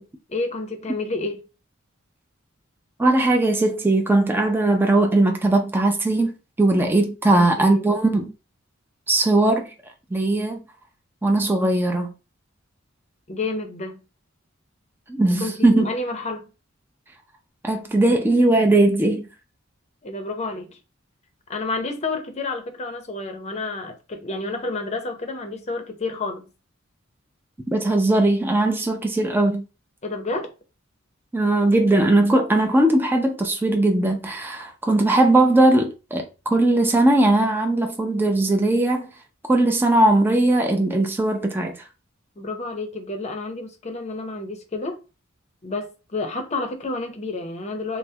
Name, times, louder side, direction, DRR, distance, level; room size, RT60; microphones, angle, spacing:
voice 1, 0.3-1.4 7.2-7.8 13.3-14.0 15.4-16.5 20.0-20.8 21.5-26.4 30.0-30.5 42.4-45.0 45.6-48.0, left 3 dB, 35° left, 0.6 m, -30 dB
voice 2, 3.0-8.3 9.1-9.7 10.1-10.6 11.2-12.1 15.1-15.9 17.6-19.3 27.7-29.6 31.3-39.1 39.5-41.7, right 2 dB, 10° right, 0.4 m, -19 dB
3.3 x 2.0 x 2.7 m
head